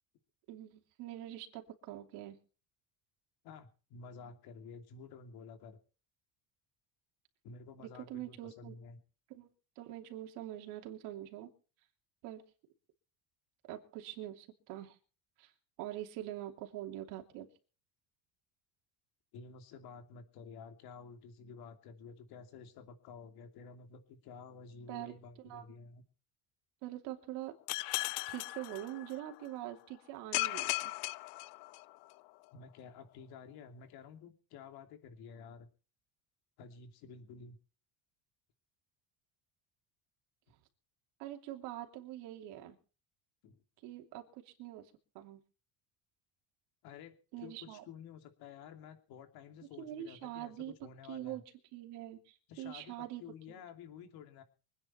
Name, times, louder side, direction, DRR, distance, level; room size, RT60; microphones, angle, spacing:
voice 1, 0.5-2.4 7.8-8.7 9.3-9.5 9.8-11.5 12.2-12.4 13.7-15.0 15.4-15.5 15.8-17.5 24.9-25.1 25.4-25.6 26.8-27.5 28.3-30.9 41.2-42.8 43.8-45.4 47.3-47.8 49.8-50.7 51.1-51.4 51.7-53.2, right 13 dB, 80° right, 3 dB, 2.9 m, -44 dB
voice 2, 3.4-5.8 7.4-9.0 19.3-26.0 32.5-35.7 36.6-37.6 43.4-43.6 46.8-50.5 50.8-51.4 52.5-54.4, left 5 dB, 65° left, 6 dB, 3.0 m, -51 dB
sound 1, 27.7-29.4 30.3-32.1, left 22 dB, 85° left, 0.6 m, -37 dB
24.5 x 9.7 x 4.4 m, 0.37 s
cardioid pair, 150°, 40 cm